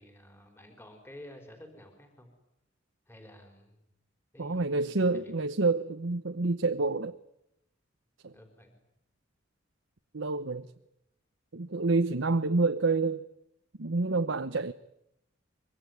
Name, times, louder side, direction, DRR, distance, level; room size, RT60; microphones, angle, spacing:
voice 1, 0.0-2.3 3.1-3.9 4.3-5.5 8.3-8.8, left 1 dB, 10° left, 4.6 m, -51 dB
voice 2, 4.4-7.2 8.2-8.3 10.1-10.7 11.5-13.2 13.8-14.7, right 3 dB, 75° right, 1.0 m, -28 dB
24.5 x 24.0 x 9.6 m
head